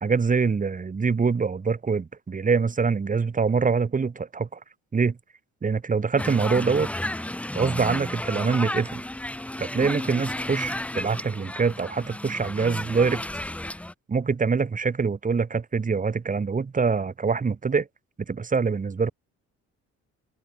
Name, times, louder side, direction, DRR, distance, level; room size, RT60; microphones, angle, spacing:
voice 1, 0.0-4.6 4.9-5.2 5.6-6.9 7.5-9.0 9.6-13.2 14.1-17.9 18.3-19.1, right 5 dB, 25° right, 1.2 m, -24 dB
sound 1, 6.2-13.9, left 1 dB, 5° left, 0.6 m, -32 dB
open air
cardioid pair, 90°, 30 cm